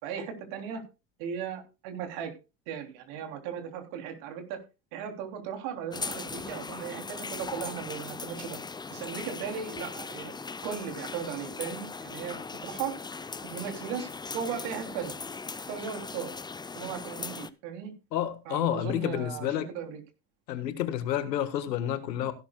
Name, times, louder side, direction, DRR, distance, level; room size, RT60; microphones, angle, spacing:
voice 1, 0.0-0.8 1.2-2.3 2.7-4.6 4.9-8.6 8.9-10.3 10.6-12.9 13.4-14.1 14.3-15.1 15.7-16.3 16.7-17.9 18.4-20.0, right 7 dB, 65° right, 3.3 m, -37 dB
sound 1, 5.9-17.5, left 4 dB, 10° left, 0.5 m, -39 dB
voice 2, 18.1-19.7 20.5-22.3, left 11 dB, 85° left, 1.6 m, -30 dB
16.0 x 11.5 x 2.3 m
hypercardioid pair, 80°, 49 cm